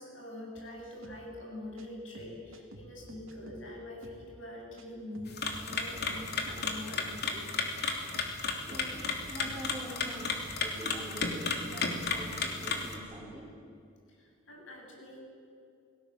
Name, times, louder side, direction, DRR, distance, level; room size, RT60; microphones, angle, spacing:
voice 1, 0.0-7.6 14.2-15.2, left 1 dB, 70° left, 0 dB, 7.7 m, -44 dB
sound 1, 0.6-0.7 1.0-1.2 1.8-1.9 2.1-3.7 4.0-4.2 4.8-4.9 5.1-6.7 7.0-7.2 7.8-7.9 8.1-9.7 10.1-10.5 10.8-10.9 11.1-11.2 11.5-11.6, right 1 dB, 85° right, 2.6 m, -51 dB
sound 2, 5.3-13.0, left 4 dB, 55° left, 3.1 m, -34 dB
voice 2, 8.5-13.5, equal, 10° right, -7 dB, 4.6 m, -45 dB
29.0 x 19.0 x 7.7 m, 2.4 s
head